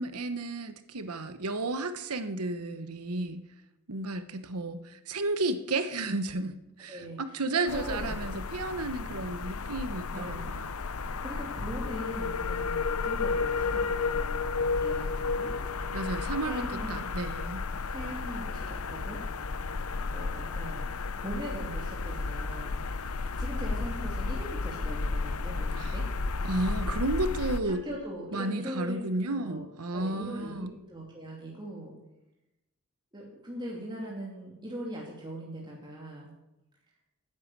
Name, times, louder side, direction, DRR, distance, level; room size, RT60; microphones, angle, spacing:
voice 1, 0.0-3.4 3.9-10.7 15.9-17.7 25.8-25.9 26.4-27.8 28.3-30.7, right 2 dB, 90° right, 10 dB, 1.1 m, -32 dB
voice 2, 6.9-8.2 10.1-10.6 10.9-15.5 16.4-17.2 17.9-19.2 20.1-20.9 21.2-22.8 23.4-26.0 27.6-29.1 29.3-29.7 29.9-31.9 33.1-36.3, equal, 20° right, -4 dB, 2.7 m, -40 dB
sound 1, 7.7-27.6, left 4 dB, 75° left, 0.8 m, -32 dB
11.5 x 9.5 x 8.4 m, 0.93 s
head